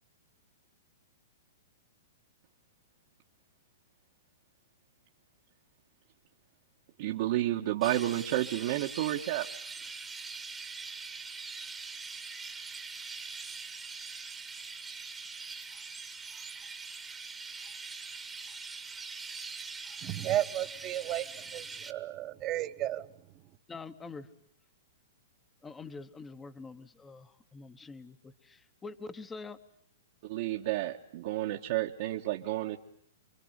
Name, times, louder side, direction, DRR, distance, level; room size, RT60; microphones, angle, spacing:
voice 1, 7.0-9.5 30.2-32.8, right 15 dB, 50° right, 1.4 m, -31 dB
Chirp tweet, 7.8-21.9, right 4 dB, 10° right, 1.4 m, -43 dB
voice 2, 20.0-23.1, right 13 dB, 30° right, 1.2 m, -33 dB
voice 3, 23.7-24.3 25.6-29.6, left 4 dB, 10° left, 1.1 m, -45 dB
27.5 x 24.0 x 8.1 m
hypercardioid pair, 145°, 0 cm